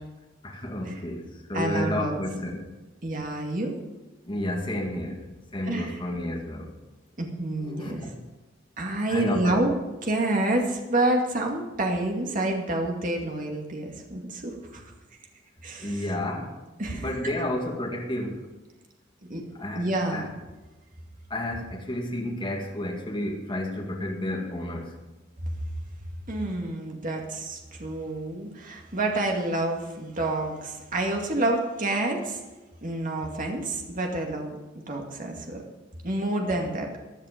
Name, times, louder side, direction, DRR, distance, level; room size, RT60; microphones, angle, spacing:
voice 1, 0.4-1.2 1.5-2.7 4.3-5.2 5.5-6.7 7.6-8.1 9.1-9.7 15.8-16.5 16.9-18.4 19.6-20.3 21.3-24.9 36.4-36.5, left 1 dB, 25° left, 0 dB, 2.1 m, -31 dB
voice 2, 1.5-2.2 3.0-3.7 5.7-6.0 7.2-8.1 8.8-9.7 10.1-14.8 15.6-16.1 16.8-17.0 19.2-19.4 19.7-20.3 26.3-32.4 32.8-35.6 36.0-36.9, right 2 dB, 45° right, 1 dB, 2.2 m, -28 dB
16.0 x 10.5 x 5.2 m, 1.1 s
head